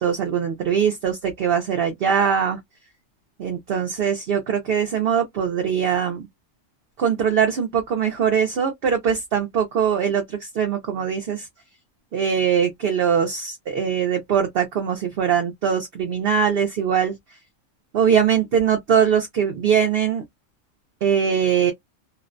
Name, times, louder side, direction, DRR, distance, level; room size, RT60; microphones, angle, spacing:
voice 1, 0.0-2.6 3.4-6.3 7.0-11.5 12.1-17.2 17.9-20.2 21.0-21.7, right 7 dB, 60° right, 0.7 m, -21 dB
2.5 x 2.0 x 2.5 m
omnidirectional pair, 1.3 m